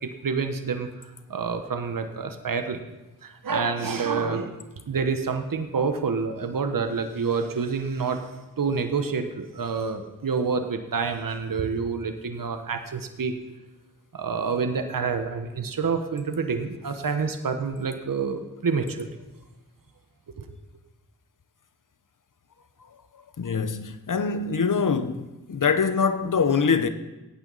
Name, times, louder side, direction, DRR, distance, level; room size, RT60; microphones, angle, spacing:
voice 1, 0.0-0.9 1.3-2.9 3.2-4.6 4.9-8.2 8.6-13.4 14.1-19.1 20.4-20.5, right 5 dB, 65° right, 1.2 m, -28 dB
voice 2, 23.4-26.9, left 5 dB, 60° left, 1.0 m, -24 dB
16.5 x 9.2 x 4.1 m
cardioid pair, 45°, 36 cm